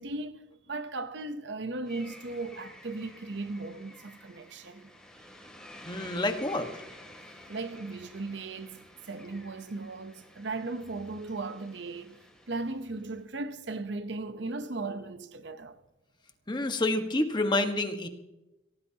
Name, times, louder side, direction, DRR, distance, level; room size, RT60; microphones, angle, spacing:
voice 1, 0.0-4.9 7.5-15.8, right 3 dB, 65° right, 0.9 m, -37 dB
sound 1, 1.9-13.2, left 1 dB, 5° left, 2.7 m, -51 dB
voice 2, 5.8-6.7 16.5-18.1, left 2 dB, 25° left, 1.4 m, -28 dB
23.0 x 17.5 x 2.9 m
head